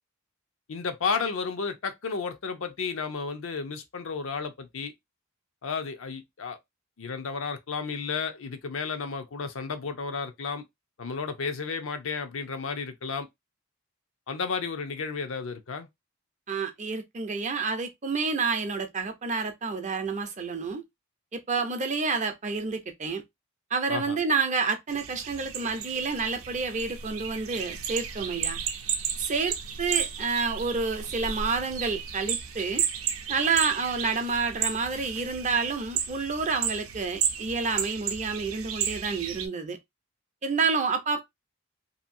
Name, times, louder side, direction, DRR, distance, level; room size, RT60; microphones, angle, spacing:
voice 1, 0.7-4.9 5.6-6.6 7.0-10.6 11.0-13.3 14.3-15.9 23.9-24.2, left 5 dB, 70° left, 0.6 m, -32 dB
voice 2, 16.5-20.8 21.3-23.2 23.7-28.6 29.2-32.8 33.3-39.8 40.4-41.2, right 4 dB, 35° right, 0.6 m, -29 dB
sound 1, 24.9-39.5, right 8 dB, 90° right, 0.6 m, -33 dB
2.8 x 2.6 x 2.6 m
head